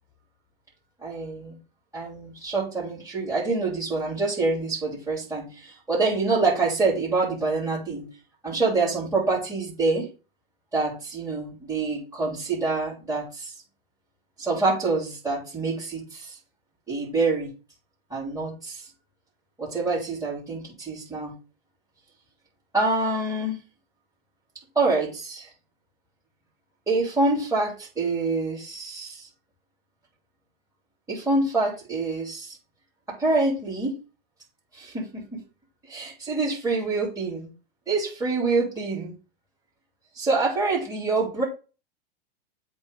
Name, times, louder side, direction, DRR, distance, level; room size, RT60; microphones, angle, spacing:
voice 1, 1.0-1.6 1.9-8.1 8.4-10.1 10.7-13.5 14.4-16.4 16.9-17.5 18.1-18.9 19.6-21.3 22.7-23.6 24.7-25.5 26.9-29.3 31.1-32.6 33.1-34.0 34.7-35.4 35.8-37.5 37.9-39.1 40.1-41.4, right 3 dB, 10° right, -8 dB, 2.9 m, -26 dB
8.0 x 3.2 x 5.2 m, 0.33 s
hypercardioid pair, 115°, 30 cm